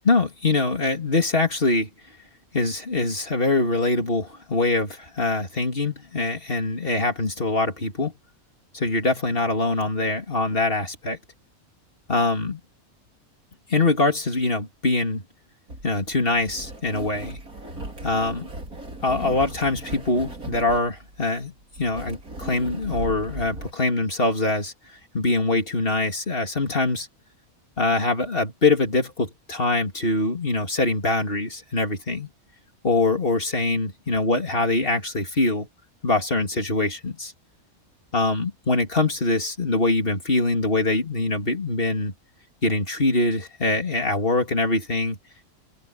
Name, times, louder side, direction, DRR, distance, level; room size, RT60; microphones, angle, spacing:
voice 1, 0.0-1.9 2.5-8.1 8.7-11.2 12.1-12.6 13.7-15.2 15.8-17.4 18.0-18.5 19.0-24.7 25.1-27.1 27.8-32.3 32.8-35.7 36.0-37.3 38.1-42.1 42.6-45.2, left 2 dB, 40° left, 3.5 m, -23 dB
sound 1, 15.7-23.7, right 2 dB, 80° right, 5.5 m, -37 dB
omnidirectional pair, 1.5 m